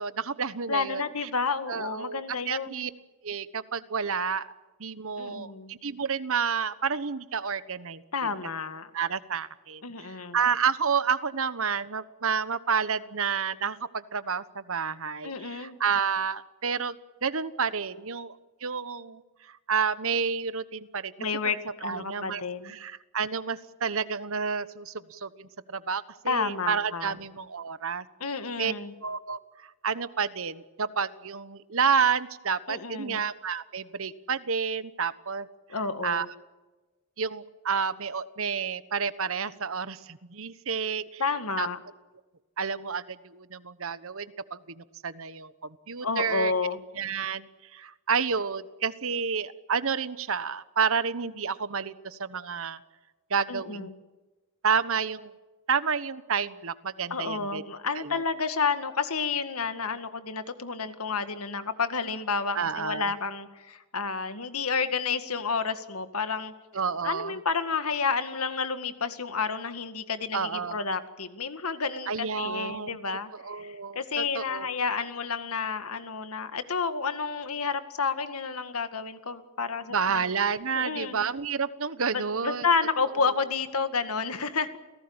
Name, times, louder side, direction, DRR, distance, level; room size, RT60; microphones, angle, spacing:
voice 1, 0.0-1.3 1.7-2.9 3.2-4.5 4.8-8.0 8.9-9.8 10.2-16.9 17.2-18.4 18.6-21.1 21.8-28.0 28.6-28.7 29.0-35.5 36.0-36.3 37.2-41.2 41.6-41.7 42.6-46.5 46.9-47.5 47.7-52.8 53.3-53.9 54.6-55.3 55.7-57.6 58.0-58.2 62.5-63.1 66.7-67.3 70.3-70.8 72.1-73.0 73.4-74.7 79.9-82.7, right 6 dB, 65° right, 14 dB, 1.2 m, -30 dB
voice 2, 0.7-2.8 5.2-5.7 8.1-8.9 9.8-10.4 15.2-15.8 21.2-22.7 26.3-27.2 28.2-28.9 32.7-33.2 35.7-36.3 41.2-41.8 46.0-46.8 53.5-53.9 57.1-66.5 67.0-80.3 80.7-81.2 82.1-84.7, left 5 dB, 85° left, 9 dB, 2.0 m, -30 dB
29.0 x 18.0 x 8.9 m, 1.2 s
head